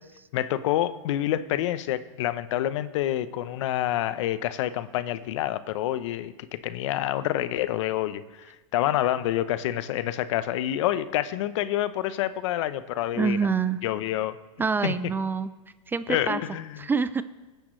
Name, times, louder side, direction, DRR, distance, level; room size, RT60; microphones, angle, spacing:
voice 1, 0.3-13.4 13.8-14.4 14.8-14.9 16.1-16.8, left 13 dB, 65° left, 14 dB, 0.8 m, -27 dB
voice 2, 13.2-13.8 14.6-15.5 15.9-16.4 16.8-17.2, right 5 dB, 10° right, 13 dB, 0.5 m, -26 dB
19.0 x 10.0 x 3.2 m, 1.2 s
hypercardioid pair, 115°, 17 cm